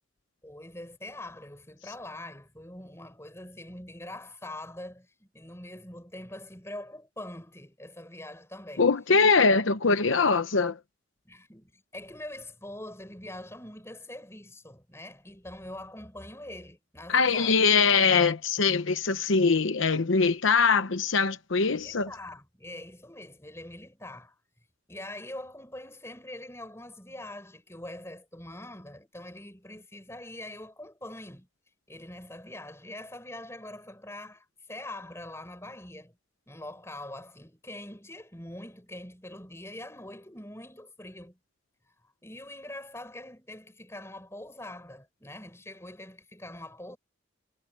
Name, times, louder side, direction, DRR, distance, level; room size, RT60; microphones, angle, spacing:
voice 1, 0.4-8.9 11.2-17.6 21.7-24.4 24.9-31.5 31.9-36.2 36.5-41.4 42.0-47.0, left 1 dB, 15° left, 6.3 m, -43 dB
voice 2, 8.8-10.8 17.1-22.1, left 4 dB, 85° left, 0.9 m, -22 dB
head